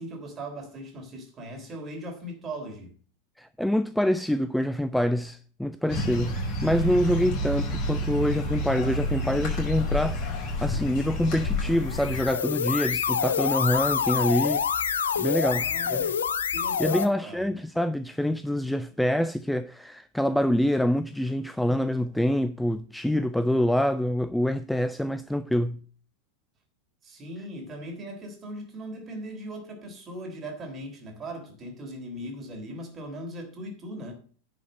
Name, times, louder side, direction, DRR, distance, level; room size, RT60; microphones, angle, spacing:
voice 1, 0.0-2.9 15.5-16.1 16.5-17.5 27.0-34.1, right 1 dB, 25° right, 3.5 m, -39 dB
voice 2, 3.4-14.6 15.2-16.1 16.8-25.8, left 1 dB, ahead, 0.4 m, -26 dB
sound 1, 5.9-12.2, left 1 dB, 35° left, 5.5 m, -29 dB
sound 2, 11.8-17.1, left 7 dB, 65° left, 0.9 m, -27 dB
10.5 x 5.8 x 7.7 m
figure-of-eight pair, 90°, 0 cm